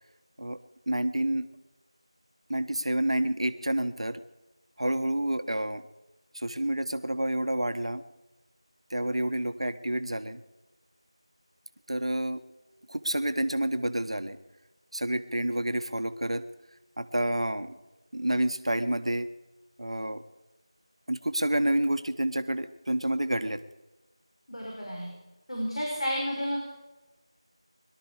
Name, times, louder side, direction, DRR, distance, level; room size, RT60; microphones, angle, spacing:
voice 1, 0.9-1.5 2.5-4.2 4.8-5.8 6.3-8.0 8.9-10.4 11.9-12.4 12.9-14.4 14.9-16.4 17.0-17.8 18.1-19.3 19.8-20.2 21.1-23.6, right 1 dB, 80° right, 9 dB, 1.3 m, -29 dB
voice 2, 24.5-25.1 25.5-26.7, equal, 80° left, -2 dB, 5.8 m, -31 dB
22.0 x 12.5 x 5.0 m, 1.1 s
figure-of-eight pair, 175°, 3 cm